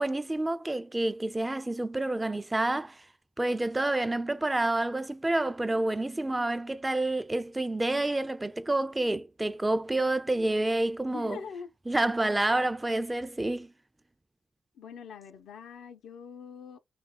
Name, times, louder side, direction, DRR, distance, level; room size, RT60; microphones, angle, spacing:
voice 1, 0.0-3.0 3.4-11.4 11.9-13.7, right 2 dB, 15° right, 0.4 m, -28 dB
voice 2, 11.1-11.7 14.7-16.8, left 6 dB, 85° left, 0.6 m, -43 dB
3.2 x 2.4 x 4.2 m
cardioid pair, 70°, 0 cm